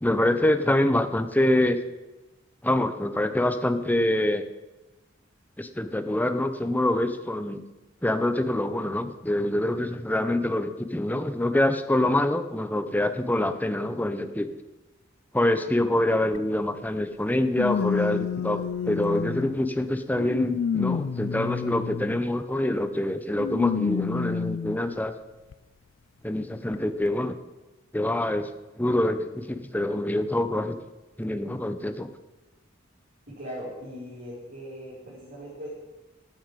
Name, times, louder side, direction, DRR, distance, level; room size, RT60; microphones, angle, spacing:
voice 1, 0.0-1.8 2.6-4.4 5.6-7.6 8.0-14.5 15.3-25.1 26.2-27.3 27.9-28.5 28.8-30.7 31.2-32.1, left 1 dB, 10° left, 9 dB, 0.8 m, -25 dB
sound 1, 16.3-16.4 17.5-19.6 20.2-22.2 23.4-24.8 25.5-25.6 26.7-26.8, left 6 dB, 80° left, 0.4 m, -29 dB
voice 2, 33.3-35.7, equal, 55° right, -11 dB, 5.4 m, -39 dB
15.0 x 9.4 x 5.3 m, 1.1 s
head